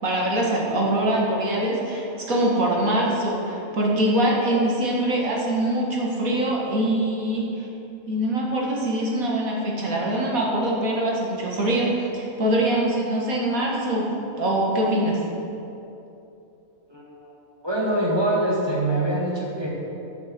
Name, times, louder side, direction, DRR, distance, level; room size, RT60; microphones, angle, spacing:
voice 1, 0.0-7.7 8.1-15.2, right 1 dB, 75° right, -3 dB, 2.3 m, -23 dB
voice 2, 16.9-17.3 17.6-19.7, right 1 dB, 20° right, -5 dB, 2.1 m, -24 dB
10.0 x 6.3 x 7.9 m, 2.9 s
omnidirectional pair, 1.5 m